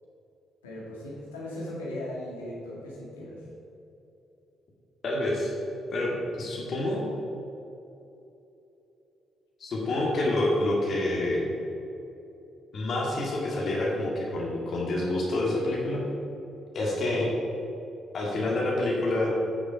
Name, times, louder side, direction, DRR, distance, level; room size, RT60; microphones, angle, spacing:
voice 1, 0.6-3.5 5.4-5.5, left 1 dB, 85° left, -4 dB, 1.9 m, -38 dB
voice 2, 5.0-5.5 5.9-7.1 9.6-11.5 12.7-16.0 16.7-17.3 18.1-19.3, left 1 dB, 55° left, -3 dB, 2.0 m, -27 dB
9.2 x 6.5 x 5.2 m, 3.0 s
hypercardioid pair, 45°, 0 cm